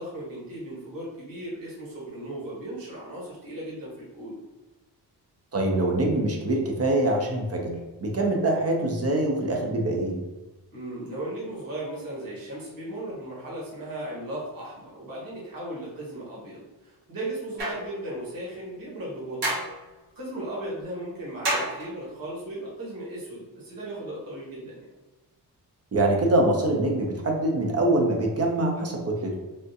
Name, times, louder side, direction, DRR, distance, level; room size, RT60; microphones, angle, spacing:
voice 1, 0.0-4.4 10.7-19.5 20.1-24.8, right 1 dB, 55° right, -6 dB, 1.3 m, -36 dB
voice 2, 5.5-7.7 8.0-10.1 25.9-29.4, right 2 dB, 40° right, 0 dB, 0.6 m, -24 dB
sound 1, 17.6-17.9 19.4-19.8 21.4-22.0, right 1 dB, 75° right, 1.3 m, -28 dB
3.5 x 2.4 x 2.6 m, 1.1 s
wide cardioid pair, 145°, 41 cm